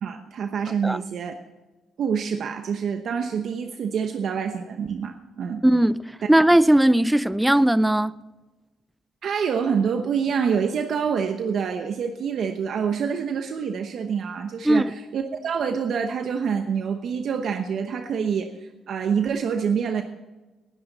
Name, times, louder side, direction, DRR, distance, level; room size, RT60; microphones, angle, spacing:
voice 1, 0.0-1.4 2.0-5.6 9.2-20.0, right 6 dB, 65° right, 0.9 m, -26 dB
voice 2, 5.6-8.2 14.6-14.9, right 1 dB, 5° right, 0.4 m, -18 dB
19.0 x 10.0 x 4.1 m
cardioid pair, 90°, 0 cm